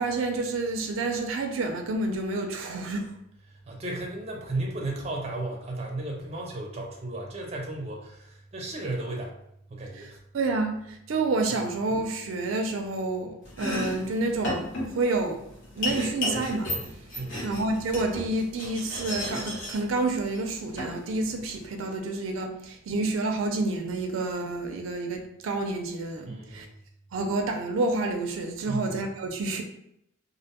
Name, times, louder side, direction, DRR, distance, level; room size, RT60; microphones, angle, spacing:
voice 1, 0.0-3.1 9.9-15.4 15.8-16.7 17.4-26.7 27.1-29.6, right 2 dB, 90° right, 5 dB, 0.4 m, -29 dB
voice 2, 3.7-9.3 9.7-10.2 17.2-17.5 26.2-26.7 28.7-29.0, right 2 dB, 30° right, 0 dB, 0.5 m, -34 dB
Domestic sounds home sounds, 13.4-21.6, left 1 dB, 75° left, 0.9 m, -34 dB
2.5 x 2.1 x 2.8 m, 0.77 s
head